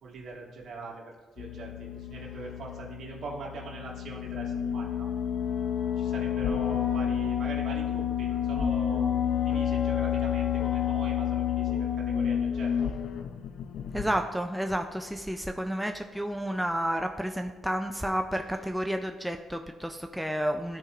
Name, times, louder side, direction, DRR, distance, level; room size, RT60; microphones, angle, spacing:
voice 1, 0.0-5.1 6.0-12.9, right 3 dB, 60° right, -2 dB, 1.7 m, -42 dB
sound 1, 1.4-14.2, left 9 dB, 70° left, 0.5 m, -29 dB
voice 2, 13.9-20.8, equal, ahead, 4 dB, 0.4 m, -31 dB
13.0 x 4.5 x 2.5 m, 1.3 s
cardioid pair, 90°, 0 cm